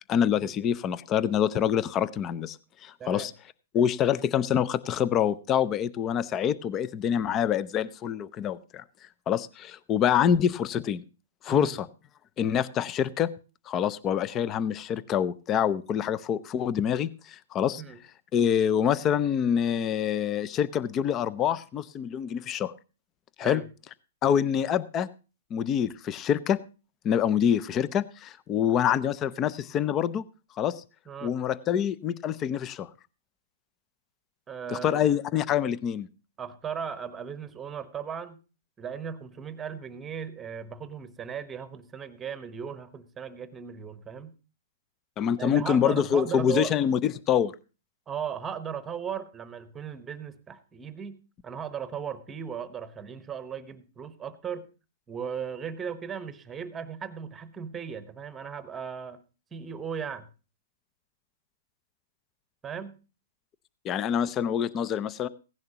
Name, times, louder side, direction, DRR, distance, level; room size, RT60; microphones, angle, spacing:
voice 1, 0.1-2.6 2.8-3.3 3.7-8.8 9.3-11.0 11.4-11.9 12.4-13.3 13.7-17.8 18.3-22.7 23.4-23.6 24.2-25.1 25.5-26.6 27.0-30.2 30.6-30.8 31.2-32.9 34.7-36.1 45.2-47.5 63.8-65.3, left 9 dB, 25° left, 19 dB, 0.5 m, -26 dB
voice 2, 34.5-35.0 36.4-38.4 38.8-44.3 45.4-46.8 48.1-51.2 51.4-54.7 55.1-59.2 59.5-60.3 62.6-62.9, right 7 dB, 15° right, 12 dB, 1.0 m, -37 dB
16.0 x 10.5 x 2.9 m, 0.32 s
hypercardioid pair, 145°, 0 cm